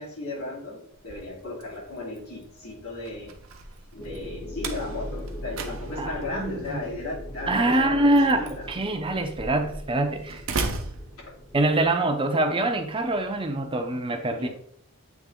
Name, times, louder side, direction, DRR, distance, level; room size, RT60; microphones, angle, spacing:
voice 1, 0.0-3.4 3.9-8.1 8.4-8.7 14.4-14.5, left 2 dB, 80° left, -4 dB, 2.6 m, -35 dB
Slam, 0.9-11.8, right 3 dB, 65° right, 0.8 m, -38 dB
sound 1, 4.0-13.7, left 1 dB, 25° left, 0.9 m, -41 dB
voice 2, 6.0-6.8 7.5-10.4 11.5-14.5, right 1 dB, 25° right, 5 dB, 0.6 m, -24 dB
8.2 x 3.3 x 3.6 m, 0.62 s
head